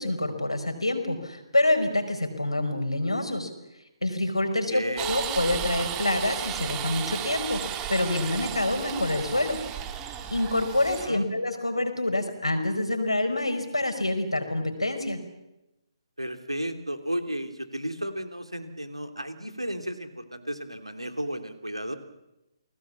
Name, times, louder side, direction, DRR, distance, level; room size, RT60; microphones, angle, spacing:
voice 1, 0.0-3.5 4.0-9.6 10.3-15.2, left 1 dB, 85° left, 7 dB, 4.9 m, -27 dB
voice 2, 4.7-5.1 11.0-11.3 16.2-22.0, equal, 90° right, 8 dB, 3.0 m, -33 dB
sound 1, 5.0-11.1, right 9 dB, 20° right, 1.9 m, -34 dB
29.0 x 20.0 x 7.4 m, 0.96 s
figure-of-eight pair, 140°, 3 cm